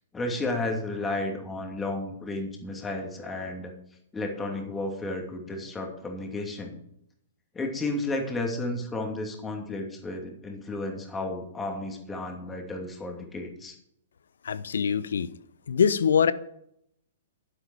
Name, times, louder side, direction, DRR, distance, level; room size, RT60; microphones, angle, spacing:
voice 1, 0.1-3.7 4.1-6.8 7.5-13.8, left 2 dB, 15° left, 2.7 m, -32 dB
voice 2, 14.4-15.3 15.7-16.3, left 7 dB, 65° left, 0.7 m, -23 dB
11.5 x 10.5 x 4.9 m
figure-of-eight pair, 110°, 0 cm